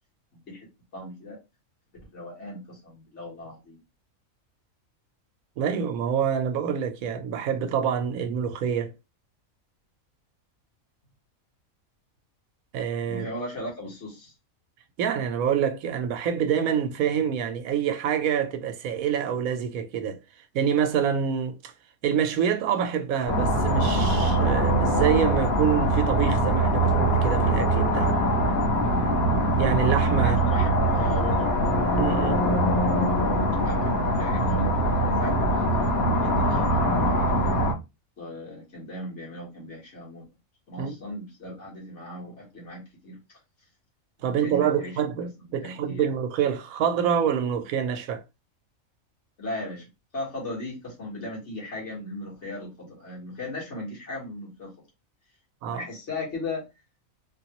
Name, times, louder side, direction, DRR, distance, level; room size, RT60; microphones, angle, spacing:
voice 1, 0.9-1.4 2.1-3.8 13.1-14.3 30.2-31.5 33.5-34.7 35.0-35.9 36.1-37.3 38.2-40.2 40.7-43.2 44.3-45.0 45.5-46.0 49.4-54.7 55.6-56.7, left 1 dB, 55° left, 1.9 m, -37 dB
voice 2, 5.6-8.9 12.7-13.3 15.0-20.2 20.5-21.7 22.0-28.2 29.6-30.4 32.0-32.5 40.8-41.0 44.2-48.2 55.6-55.9, right 8 dB, 85° right, 1.0 m, -26 dB
sound 1, 23.3-37.7, right 1 dB, 85° left, 1.7 m, -23 dB
3.5 x 2.3 x 2.9 m
omnidirectional pair, 1.5 m